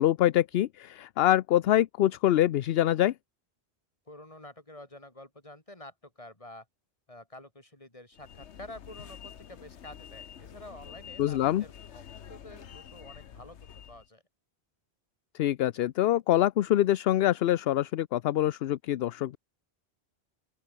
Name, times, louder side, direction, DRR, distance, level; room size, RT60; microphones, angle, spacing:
voice 1, 0.0-3.1 11.2-11.6 15.4-19.4, left 13 dB, 70° left, 0.8 m, -25 dB
voice 2, 4.1-6.7 7.1-12.0 12.3-14.2, left 1 dB, 30° left, 4.0 m, -49 dB
sound 1, 8.1-14.1, left 8 dB, 90° left, 1.3 m, -48 dB
open air
omnidirectional pair, 1.1 m